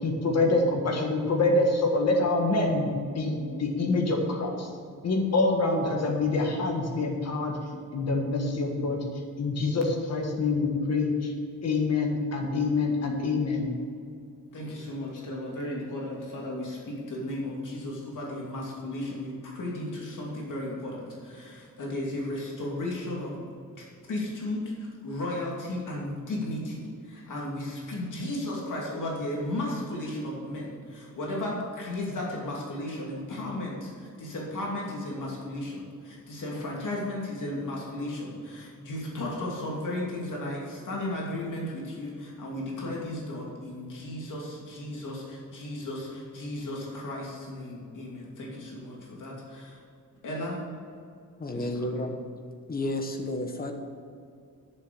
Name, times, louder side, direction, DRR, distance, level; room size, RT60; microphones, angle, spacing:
voice 1, 0.0-4.7 5.0-7.6 7.9-9.0 9.4-11.3 11.6-13.8, left 3 dB, 50° left, 1 dB, 1.7 m, -26 dB
voice 2, 14.5-23.4 23.7-49.8 50.2-50.6 51.5-52.1, left 1 dB, 65° left, -3 dB, 2.8 m, -35 dB
voice 3, 51.4-52.2 52.7-53.7, left 2 dB, 25° left, 4 dB, 1.1 m, -31 dB
10.5 x 7.2 x 6.9 m, 2.3 s
wide cardioid pair, 175°, 33 cm